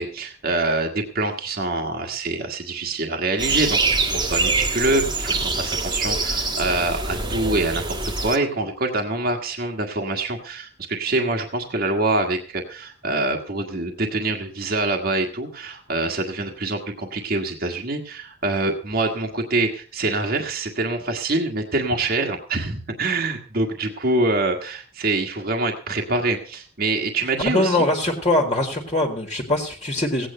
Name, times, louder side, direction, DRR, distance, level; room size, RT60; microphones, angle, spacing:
voice 1, 0.0-27.9, right 2 dB, 50° right, 2 dB, 1.6 m, -25 dB
sound 1, 3.4-8.4, right 3 dB, 25° right, 1.5 m, -24 dB
voice 2, 27.5-30.3, left 1 dB, 30° left, 2 dB, 1.8 m, -22 dB
16.5 x 9.0 x 5.5 m, 0.43 s
head